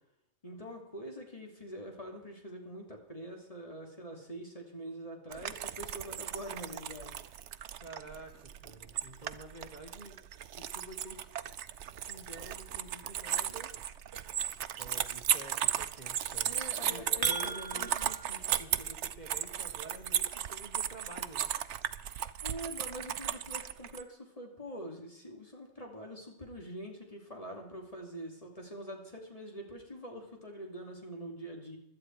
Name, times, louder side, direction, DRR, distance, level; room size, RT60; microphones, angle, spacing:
voice 1, 0.4-7.1 16.4-17.9 22.4-31.8, equal, 30° left, 1 dB, 2.9 m, -44 dB
sound 1, 5.3-24.0, right 10 dB, 85° right, 1.0 m, -35 dB
voice 2, 7.7-10.2 10.5-11.3 12.1-13.7 14.8-16.5 16.9-21.5, right 1 dB, 40° right, 4 dB, 1.8 m, -49 dB
sound 2, 16.7-18.2, right 4 dB, 65° right, 1.7 m, -38 dB
16.5 x 12.0 x 4.7 m, 0.80 s
omnidirectional pair, 1.2 m